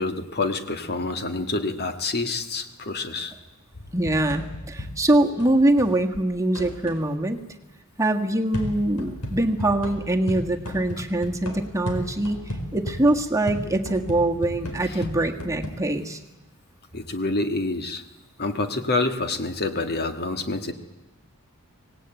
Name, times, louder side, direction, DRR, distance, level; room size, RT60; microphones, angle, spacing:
voice 1, 0.0-3.3 14.9-15.0 16.9-18.0 18.4-20.7, left 3 dB, 45° left, 7 dB, 1.9 m, -27 dB
sound 1, 3.7-6.0 6.5-7.1 8.5-15.7, equal, 85° left, 4.4 m, -35 dB
voice 2, 3.9-7.4 8.0-16.2, right 1 dB, 15° right, 3 dB, 1.6 m, -23 dB
25.5 x 18.5 x 9.1 m, 1.0 s
head